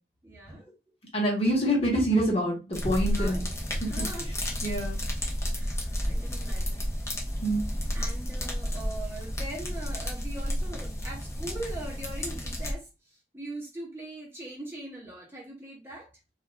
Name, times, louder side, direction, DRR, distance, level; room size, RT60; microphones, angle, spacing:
voice 1, 0.2-0.7 3.0-3.5 3.9-4.3 5.5-7.0 7.9-16.1, right 2 dB, 15° right, -4 dB, 0.8 m, -41 dB
voice 2, 1.1-3.4 3.8-4.1 4.6-5.0 7.4-7.6, right 1 dB, 35° left, -1 dB, 1.0 m, -26 dB
sound 1, 2.7-12.7, equal, 15° left, 0.7 m, -31 dB
2.4 x 2.4 x 3.2 m, 0.27 s
head